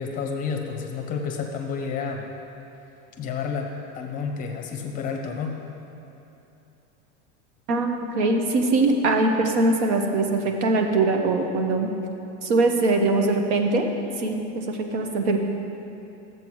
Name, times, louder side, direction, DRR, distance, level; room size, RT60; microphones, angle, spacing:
voice 1, 0.0-2.3 3.2-5.6, left 5 dB, 25° left, 2 dB, 0.6 m, -30 dB
voice 2, 7.7-11.9 12.4-13.9 14.2-15.4, right 2 dB, 80° right, 4 dB, 1.1 m, -22 dB
13.5 x 7.8 x 3.1 m, 2.9 s
supercardioid pair, 170°, 35 cm